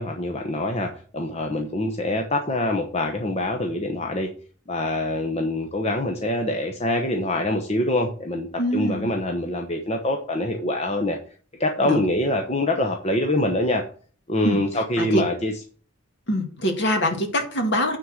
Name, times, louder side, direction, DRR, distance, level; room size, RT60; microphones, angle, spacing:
voice 1, 0.0-4.3 4.7-11.2 11.6-13.8 14.3-15.5, left 1 dB, 30° left, 2 dB, 1.0 m, -25 dB
voice 2, 8.6-9.1 11.8-12.0 14.4-14.6 15.0-15.2 16.3-18.0, equal, 55° left, 5 dB, 2.0 m, -24 dB
9.6 x 4.4 x 6.4 m, 0.42 s
head